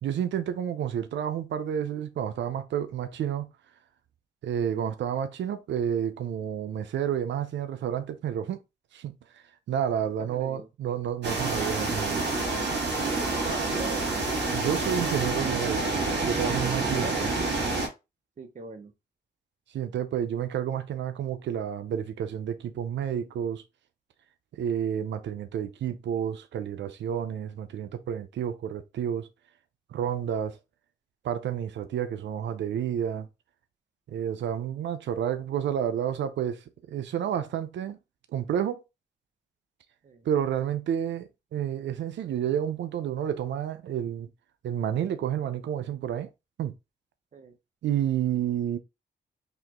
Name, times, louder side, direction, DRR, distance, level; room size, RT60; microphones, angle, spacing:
voice 1, 0.0-3.5 4.4-8.6 8.9-9.1 9.7-12.3 14.5-17.3 19.7-23.6 24.5-29.3 29.9-30.6 31.2-33.3 34.1-38.0 38.3-38.8 40.2-44.3 44.6-46.3 46.6-46.7 47.8-48.8, right 9 dB, 90° right, 0.5 m, -30 dB
voice 2, 10.3-10.7 13.0-14.1 17.0-17.2 18.4-18.9 40.0-40.2 47.3-47.5, right 4 dB, 45° right, 0.7 m, -40 dB
sound 1, 11.2-17.9, right 3 dB, 70° right, 1.9 m, -28 dB
4.1 x 2.9 x 2.9 m
cardioid pair, 80°, 18 cm